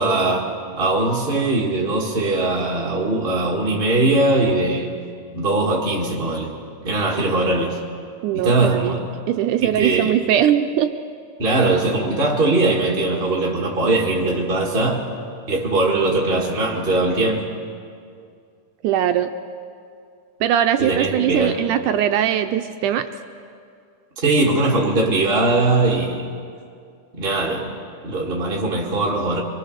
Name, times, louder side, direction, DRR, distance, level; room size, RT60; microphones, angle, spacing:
voice 1, 0.0-4.9 5.3-6.5 6.8-7.8 8.3-9.1 9.6-10.2 11.4-15.1 15.5-17.5 20.8-21.6 24.2-26.3 27.2-27.7 28.0-29.4, right 2 dB, 30° right, -2 dB, 1.0 m, -20 dB
voice 2, 8.2-8.9 9.3-10.9 18.8-19.3 20.4-23.1, right 10 dB, 80° right, 7 dB, 1.8 m, -20 dB
25.5 x 23.0 x 6.5 m, 2.3 s
omnidirectional pair, 4.3 m